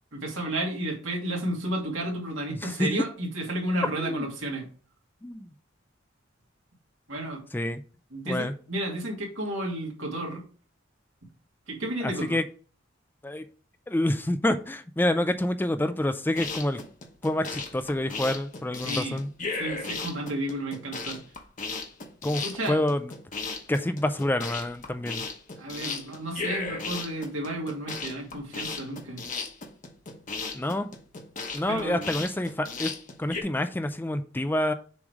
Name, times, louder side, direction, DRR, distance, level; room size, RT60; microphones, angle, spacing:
voice 1, 0.1-4.7 7.1-7.4 8.1-10.4 11.7-12.4 18.8-19.2 19.5-21.2 22.4-22.8 25.6-29.2 31.7-32.0, right 1 dB, 85° right, 2.4 m, -32 dB
voice 2, 2.5-2.9 4.0-4.3 5.2-5.5 7.5-7.8 8.3-8.5 12.0-12.4 13.2-13.4 13.9-16.8 17.2-19.3 22.2-23.1 23.7-25.3 30.5-30.9 31.5-32.9 33.2-34.7, left 1 dB, 10° left, 0.4 m, -27 dB
sound 1, 16.2-33.4, left 4 dB, 40° left, 1.0 m, -35 dB
7.0 x 3.2 x 5.1 m
head